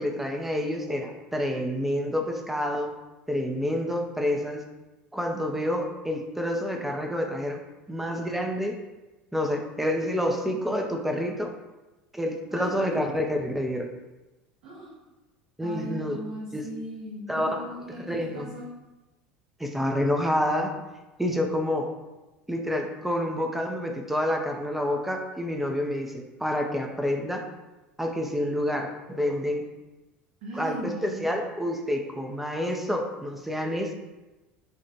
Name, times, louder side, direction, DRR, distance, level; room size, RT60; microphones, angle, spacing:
voice 1, 0.0-2.9 3.3-4.6 5.1-7.6 7.9-8.8 9.3-11.5 12.1-13.9 15.6-16.2 16.5-16.6 17.3-17.5 18.1-18.6 19.6-20.7 21.2-21.9 22.5-27.4 28.0-29.7 30.5-33.9, left 1 dB, 5° right, 2 dB, 0.6 m, -28 dB
voice 2, 12.5-13.0 14.6-15.0 15.6-18.7 30.4-31.5, right 1 dB, 55° right, -7 dB, 1.2 m, -38 dB
5.2 x 2.4 x 2.9 m, 1.1 s
figure-of-eight pair, 75°, 5 cm